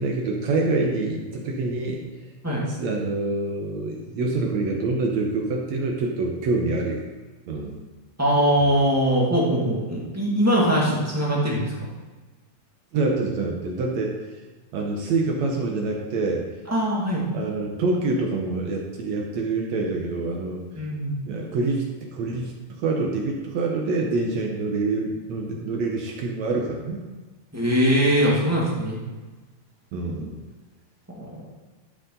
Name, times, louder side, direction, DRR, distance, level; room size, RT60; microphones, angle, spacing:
voice 1, 0.0-2.0 2.7-7.0 7.5-7.8 12.9-14.1 14.7-16.4 17.3-20.6 21.2-27.0 29.9-30.4, right 3 dB, 70° right, 0 dB, 1.8 m, -26 dB
voice 2, 8.2-11.7 16.7-17.2 20.7-21.1 27.5-29.0 31.2-31.3, equal, 10° right, -5 dB, 1.1 m, -21 dB
12.0 x 6.8 x 3.9 m, 1.3 s
omnidirectional pair, 4.3 m